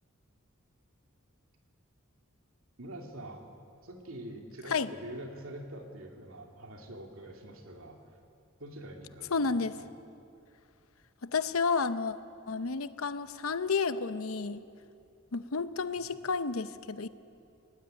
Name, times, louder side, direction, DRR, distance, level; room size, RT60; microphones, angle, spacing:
voice 1, 2.8-3.4 3.8-8.0 8.6-9.9 16.0-16.1, right 1 dB, 70° right, 2 dB, 2.7 m, -45 dB
voice 2, 9.3-9.8 11.2-12.1 12.5-14.6 15.3-17.1, left 4 dB, 80° left, 13 dB, 0.8 m, -31 dB
20.0 x 19.0 x 9.0 m, 2.5 s
head